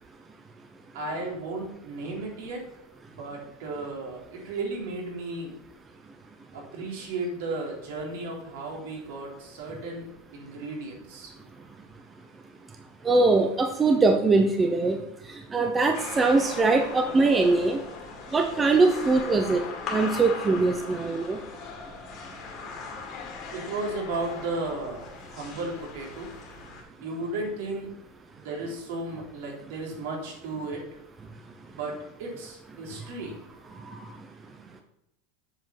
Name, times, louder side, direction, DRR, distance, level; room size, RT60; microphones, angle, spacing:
voice 1, 0.9-2.7 3.1-5.6 6.5-11.3 23.5-26.3 27.0-28.0 28.4-30.9 31.7-33.4, right 2 dB, 70° right, -1 dB, 3.7 m, -34 dB
voice 2, 13.0-15.0 15.3-17.8 18.3-19.6 19.9-21.4, right 3 dB, 15° right, 4 dB, 0.7 m, -22 dB
sound 1, 15.9-26.8, left 4 dB, 30° left, 2.1 m, -39 dB
7.8 x 7.3 x 5.8 m, 0.82 s
supercardioid pair, 170°, 0 cm